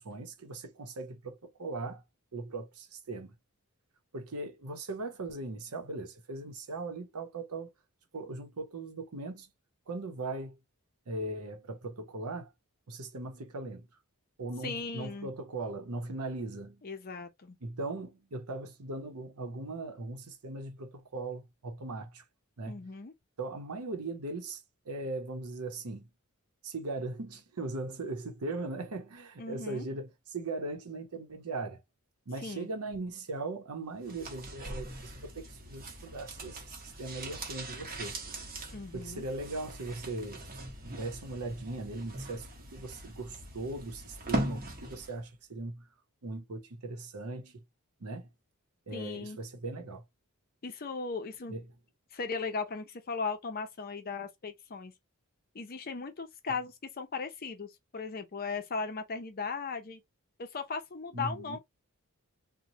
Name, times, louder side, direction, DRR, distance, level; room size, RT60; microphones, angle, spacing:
voice 1, 0.0-2.0 2.3-3.3 4.1-7.7 8.1-9.5 9.9-10.6 11.1-12.5 12.9-13.9 14.4-16.8 17.6-22.2 22.6-22.8 23.4-26.1 26.6-31.8 32.3-38.2 38.9-40.4 40.8-45.8 46.2-47.5 48.0-48.3 48.9-50.0 51.5-51.6 61.1-61.6, right 2 dB, 85° right, 0.8 m, -39 dB
voice 2, 14.6-15.3 16.8-17.6 22.7-23.1 29.4-29.9 32.4-32.7 38.7-39.2 48.9-49.4 50.6-51.5 52.1-54.9 55.5-60.0 60.4-61.6, left 4 dB, 40° left, 0.6 m, -37 dB
sound 1, 34.0-45.2 45.5-45.6, right 1 dB, 40° right, 0.9 m, -40 dB
3.0 x 2.1 x 2.7 m
head